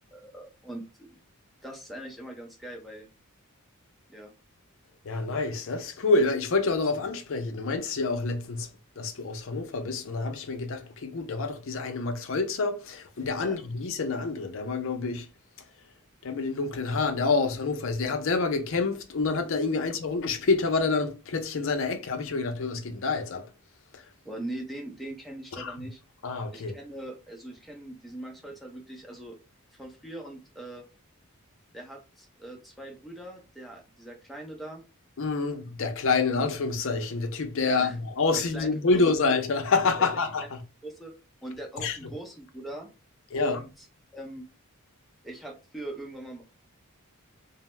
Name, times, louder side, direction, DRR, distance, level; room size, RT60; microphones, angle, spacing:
voice 1, 0.1-1.2 1.6-3.1 4.1-4.3 13.4-13.6 19.7-19.8 24.2-26.0 26.5-29.4 29.7-30.9 31.7-34.8 37.6-38.0 38.4-39.0 40.0-40.1 40.8-41.1 41.4-42.9 43.3-43.7 44.1-44.5 45.2-46.4, right 1 dB, ahead, 0.6 m, -41 dB
voice 2, 5.0-8.7 9.0-15.3 16.2-23.5 23.9-24.0 25.6-25.9 26.2-26.8 35.2-40.6 41.8-42.1 43.3-43.6, left 3 dB, 60° left, 0.5 m, -27 dB
2.6 x 2.0 x 3.1 m
head